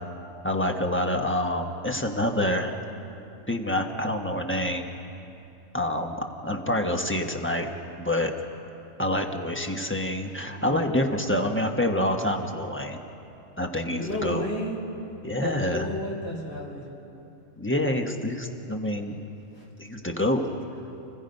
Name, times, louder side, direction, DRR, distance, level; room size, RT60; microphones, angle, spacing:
voice 1, 0.4-2.8 3.5-4.9 5.7-7.7 8.0-8.3 9.0-13.0 13.6-14.4 15.2-15.9 17.6-19.2 19.8-20.4, left 1 dB, 10° left, 3 dB, 1.2 m, -27 dB
voice 2, 10.5-10.9 13.9-14.8 15.4-16.8 19.6-19.7, left 1 dB, 45° left, -4 dB, 3.8 m, -32 dB
30.0 x 17.0 x 5.4 m, 2.8 s
omnidirectional pair, 1.5 m